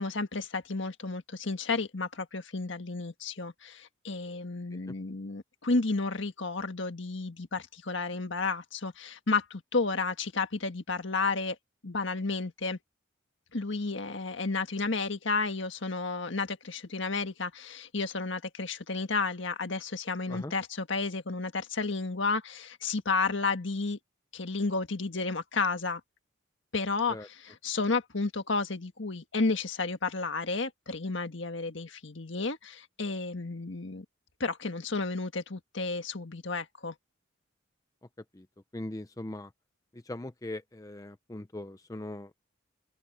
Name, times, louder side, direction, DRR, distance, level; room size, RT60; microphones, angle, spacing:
voice 1, 0.0-11.6 11.8-12.8 13.5-24.0 24.3-26.0 26.7-34.0 34.4-36.9, left 3 dB, 65° left, 1.6 m, -32 dB
voice 2, 38.7-39.5 39.9-42.4, left 1 dB, 15° left, 0.5 m, -40 dB
open air
head